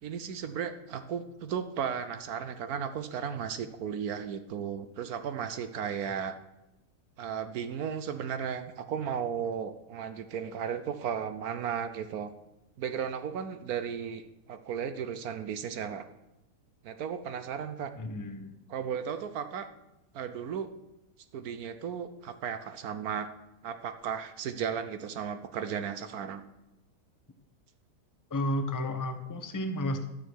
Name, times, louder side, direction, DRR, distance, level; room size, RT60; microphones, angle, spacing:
voice 1, 0.0-6.3 7.2-12.3 12.8-14.2 14.5-16.1 16.8-17.9 18.7-19.7 20.1-20.7 21.3-23.3 23.6-26.4, right 7 dB, 70° right, 10 dB, 1.2 m, -35 dB
voice 2, 18.0-18.5 28.3-30.1, left 1 dB, 25° left, 8 dB, 0.4 m, -32 dB
12.0 x 6.7 x 6.2 m, 0.92 s
omnidirectional pair, 1.8 m